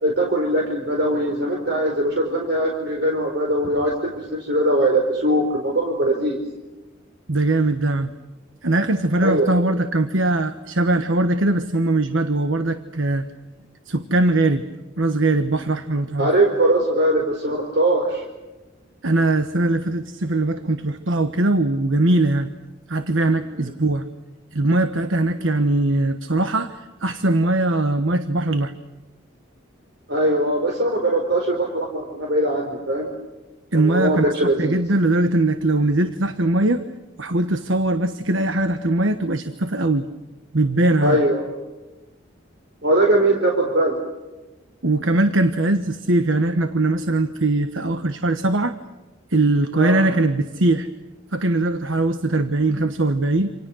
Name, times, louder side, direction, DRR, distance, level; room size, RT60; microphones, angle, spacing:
voice 1, 0.0-6.4 9.2-9.6 16.2-18.2 30.1-33.1 33.7-34.7 41.0-41.5 42.8-44.0 49.8-50.0, right 1 dB, 60° right, 1 dB, 4.4 m, -21 dB
voice 2, 7.3-8.1 8.6-13.3 13.9-14.7 15.0-16.3 19.0-22.5 22.9-24.0 24.5-28.7 33.7-34.2 34.6-36.8 37.2-40.1 40.5-41.2 44.8-48.8 49.3-50.9 51.3-53.5, right 2 dB, 80° right, 9 dB, 1.3 m, -21 dB
28.5 x 27.5 x 6.4 m, 1.1 s
head